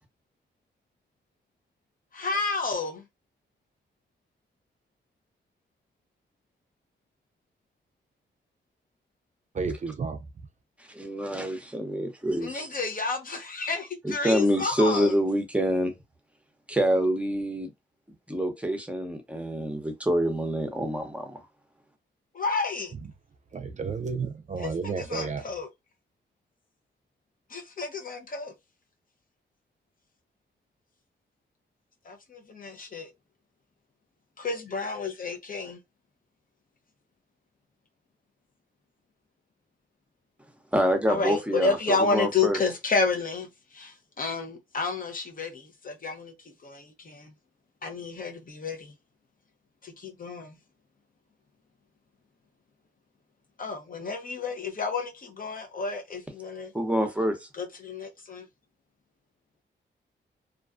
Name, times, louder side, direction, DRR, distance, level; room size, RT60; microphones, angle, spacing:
voice 1, 2.1-3.0 12.4-15.1 22.3-22.9 24.6-25.7 27.5-28.5 32.1-33.1 34.4-35.8 41.1-43.5 43.7-46.3 46.6-47.3 47.8-48.9 49.8-50.6 53.6-56.7 57.6-58.4, left 4 dB, 45° left, 0.7 m, -30 dB
voice 2, 9.5-10.3 23.5-25.4, right 5 dB, 40° right, 0.4 m, -32 dB
voice 3, 10.9-12.7 14.0-15.9 16.7-17.7 18.3-21.4 40.7-42.6 56.7-57.5, equal, 5° right, 0.8 m, -26 dB
2.4 x 2.2 x 2.4 m
cardioid pair, 65°, 19 cm